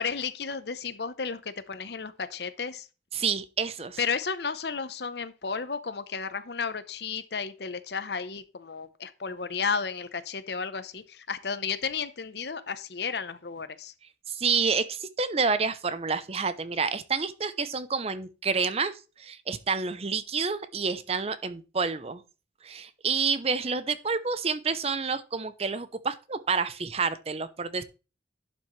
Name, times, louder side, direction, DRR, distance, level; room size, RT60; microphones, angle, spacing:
voice 1, 0.0-2.9 4.0-13.9, left 5 dB, 65° left, 0.8 m, -33 dB
voice 2, 3.1-4.0 14.3-22.2 22.6-27.8, right 5 dB, 35° right, 0.6 m, -29 dB
11.5 x 6.2 x 3.2 m
head